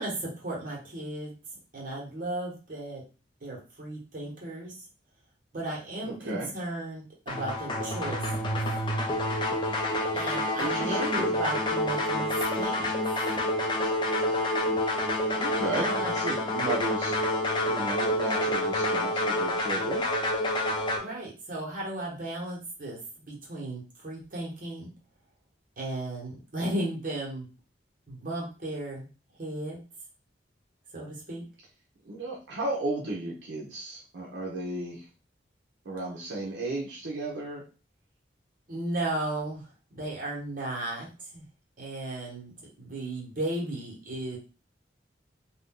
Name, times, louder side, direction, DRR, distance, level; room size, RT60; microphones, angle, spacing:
voice 1, 0.0-1.4 1.7-3.0 3.4-4.7 5.5-8.2 10.1-12.9 15.8-16.1 21.0-24.9 25.8-27.5 28.1-29.1 29.4-29.8 30.9-31.4 38.7-41.1 41.3-41.4 41.8-42.5 42.8-44.4, right 1 dB, 50° right, -4 dB, 1.2 m, -35 dB
voice 2, 6.0-6.5 10.6-11.4 15.4-17.2 17.7-20.1 32.1-35.0 35.9-37.6, right 2 dB, 85° right, -2 dB, 0.7 m, -34 dB
sound 1, 7.3-21.0, left 1 dB, 25° left, 0.5 m, -28 dB
2.6 x 2.2 x 3.6 m, 0.34 s
head